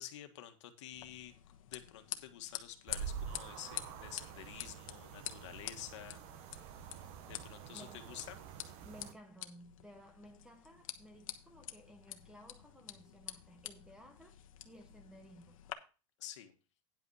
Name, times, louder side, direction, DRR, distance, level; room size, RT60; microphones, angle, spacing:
voice 1, 0.0-1.3 1.6-6.2 7.3-8.4 16.2-16.5, left 12 dB, 60° left, 1.5 m, -49 dB
sound 1, 0.9-15.7, left 12 dB, 85° left, 1.2 m, -48 dB
sound 2, 2.9-9.1, right 8 dB, 35° right, 1.0 m, -47 dB
voice 2, 7.7-8.0 8.8-14.4 14.6-15.6, equal, 5° right, 0.7 m, -56 dB
10.0 x 5.5 x 5.6 m
supercardioid pair, 170°, 17 cm